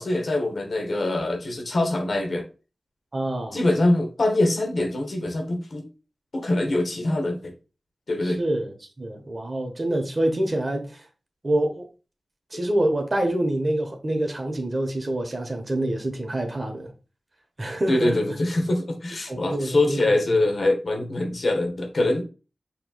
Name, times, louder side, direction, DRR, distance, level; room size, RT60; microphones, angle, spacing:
voice 1, 0.0-2.4 3.5-5.9 6.3-7.5 8.1-8.4 12.5-12.6 17.9-22.2, left 2 dB, 65° left, 1.1 m, -24 dB
voice 2, 3.1-3.6 8.2-11.0 11.4-11.9 12.5-16.9 17.6-18.1 19.3-20.1, right 1 dB, 45° right, 1.2 m, -26 dB
5.7 x 3.1 x 2.4 m
cardioid pair, 40°, 0 cm